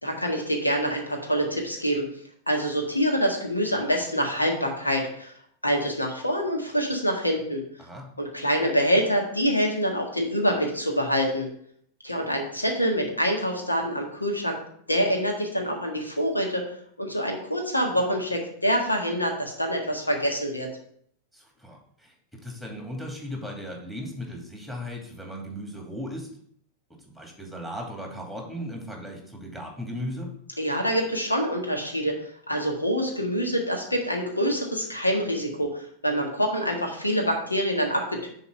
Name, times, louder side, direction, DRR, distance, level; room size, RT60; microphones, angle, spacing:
voice 1, 0.0-2.0 2.5-5.3 5.6-7.6 8.2-11.5 12.0-14.6 14.9-16.6 17.0-20.7 30.6-32.1 32.5-38.3, equal, 85° left, 2 dB, 1.6 m, -26 dB
voice 2, 7.8-8.1 12.2-12.3 21.3-22.1 22.4-26.3 27.1-30.3, equal, 5° left, 0 dB, 2.4 m, -37 dB
6.9 x 4.1 x 6.6 m, 0.66 s
figure-of-eight pair, 90°, 0 cm